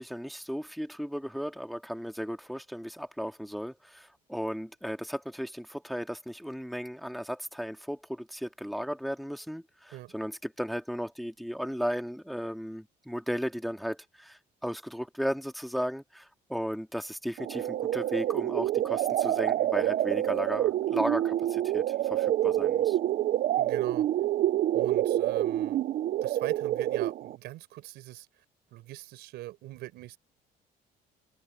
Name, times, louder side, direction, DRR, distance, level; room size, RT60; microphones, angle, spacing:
voice 1, 0.0-23.0, equal, ahead, 2.5 m, -35 dB
sound 1, 17.4-27.4, right 12 dB, 55° right, 0.5 m, -27 dB
voice 2, 23.6-24.1 24.7-25.8 26.2-28.3 28.7-30.2, right 16 dB, 85° right, 4.7 m, -41 dB
cardioid pair, 110°, 17 cm